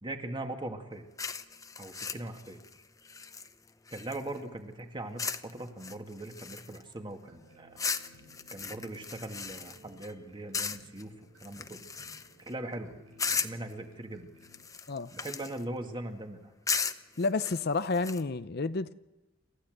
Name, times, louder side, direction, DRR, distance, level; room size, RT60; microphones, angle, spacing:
voice 1, 0.0-1.1 1.8-2.6 3.9-7.8 8.5-11.1 11.4-11.8 12.5-12.9 13.3-14.3 15.1-16.5, right 1 dB, 25° right, 2.1 m, -40 dB
sound 1, 1.2-4.4 5.2-5.5 5.8-6.9 7.8-10.1 10.5-11.0 11.4-12.5 13.2-13.7 14.4-15.6 16.7-18.2, left 5 dB, 15° left, 0.8 m, -36 dB
sound 2, 7.2-14.6, equal, 85° right, 7.8 m, -58 dB
voice 2, 17.2-18.9, left 3 dB, 50° left, 0.7 m, -30 dB
29.0 x 14.5 x 7.9 m
head